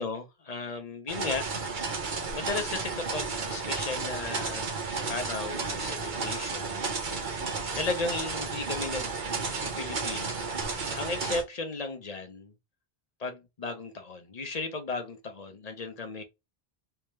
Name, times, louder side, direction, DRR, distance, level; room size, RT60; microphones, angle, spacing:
voice 1, 0.0-1.5 2.3-7.3 7.7-9.1 9.6-10.4 10.9-12.5 13.2-16.2, left 3 dB, 45° left, 0.8 m, -35 dB
sound 1, 1.1-11.4, right 4 dB, 55° right, 1.0 m, -33 dB
3.4 x 2.9 x 3.1 m
omnidirectional pair, 1.0 m